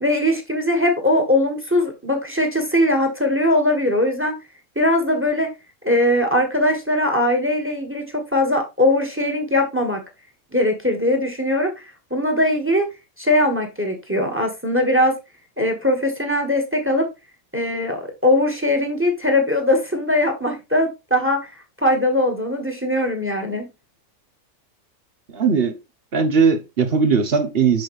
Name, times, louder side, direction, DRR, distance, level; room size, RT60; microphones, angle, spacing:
voice 1, 0.0-4.3 4.7-5.5 5.8-10.0 10.5-11.7 12.1-12.9 13.2-15.1 15.6-17.0 17.5-21.4 21.8-23.7, left 1 dB, 10° right, 1.6 m, -20 dB
voice 2, 25.3-25.7 26.1-27.8, right 5 dB, 50° right, 1.1 m, -18 dB
6.4 x 6.3 x 3.2 m
omnidirectional pair, 1.4 m